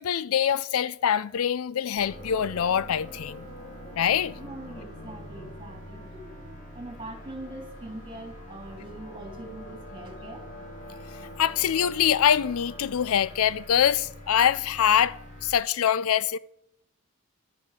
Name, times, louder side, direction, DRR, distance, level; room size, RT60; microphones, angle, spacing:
voice 1, 0.0-3.5 4.0-4.3 11.4-15.2 15.4-16.4, left 9 dB, 65° left, 0.4 m, -24 dB
sound 1, 2.0-15.5, left 1 dB, 35° left, 4.4 m, -44 dB
voice 2, 4.3-10.5, right 1 dB, 25° right, 3.5 m, -42 dB
12.0 x 9.5 x 7.6 m
head